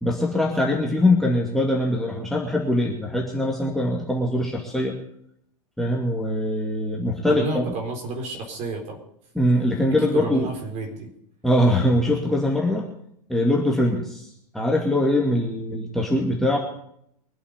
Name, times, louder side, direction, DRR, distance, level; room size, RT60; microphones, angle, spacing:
voice 1, 0.0-5.0 5.8-7.7 9.3-10.5 11.4-12.9 13.3-14.3 14.5-16.6, left 1 dB, ahead, -2 dB, 2.4 m, -22 dB
voice 2, 7.3-9.0 10.0-11.1, right 2 dB, 35° right, 3 dB, 4.1 m, -30 dB
24.0 x 8.3 x 5.2 m, 0.71 s
figure-of-eight pair, 100°, 20 cm